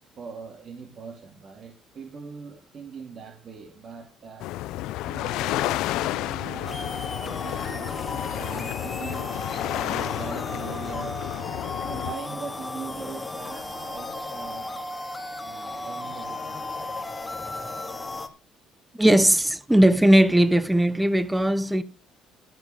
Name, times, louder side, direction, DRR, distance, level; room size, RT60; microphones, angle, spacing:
voice 1, 0.2-4.5 5.0-8.0 8.3-11.2 11.8-14.9 15.4-17.4, right 5 dB, 45° right, 2.5 m, -41 dB
sound 1, 4.4-12.2, left 16 dB, 80° left, 0.5 m, -31 dB
sound 2, 6.7-18.3, left 2 dB, 15° left, 2.3 m, -35 dB
voice 2, 18.9-21.8, right 1 dB, 5° right, 0.9 m, -18 dB
13.5 x 4.7 x 9.0 m
cardioid pair, 100°, 0 cm